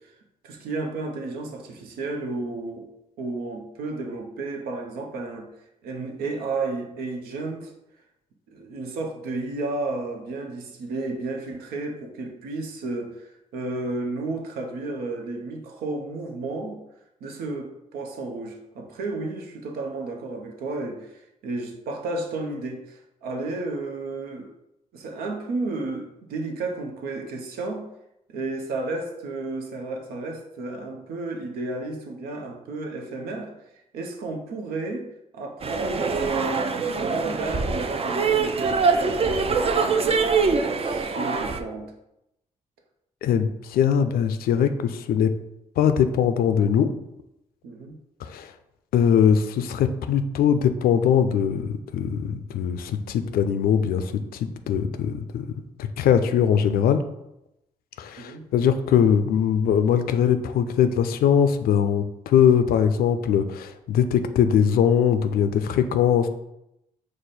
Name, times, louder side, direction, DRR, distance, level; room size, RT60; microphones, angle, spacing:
voice 1, 0.4-2.9 3.2-5.5 5.8-7.7 8.5-16.8 17.2-24.5 24.9-27.9 28.3-33.5 33.9-35.1 35.3-36.6 37.0-41.9 47.6-48.0 58.2-58.4, right 3 dB, 80° right, 3 dB, 0.7 m, -32 dB
sound 1, 35.6-41.6, right 4 dB, 40° right, 0.5 m, -24 dB
voice 2, 43.2-45.3 45.8-46.9 48.2-48.5 48.9-55.5 55.8-57.0 58.0-66.3, left 8 dB, 75° left, 10 dB, 0.4 m, -21 dB
4.8 x 2.1 x 4.1 m, 0.86 s
supercardioid pair, 50°, 16 cm